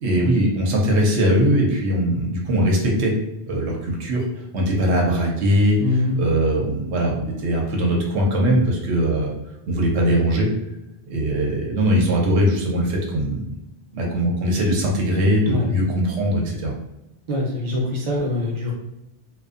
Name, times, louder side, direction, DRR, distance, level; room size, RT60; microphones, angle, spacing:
voice 1, 0.0-3.2 3.5-4.2 4.5-5.8 6.2-9.3 9.7-10.5 11.1-13.5 13.9-16.7, equal, 85° right, -1 dB, 0.9 m, -20 dB
voice 2, 5.8-6.2 15.5-15.7 17.3-18.7, left 2 dB, 40° right, -3 dB, 0.7 m, -23 dB
2.5 x 2.3 x 2.4 m, 0.88 s
omnidirectional pair, 1.1 m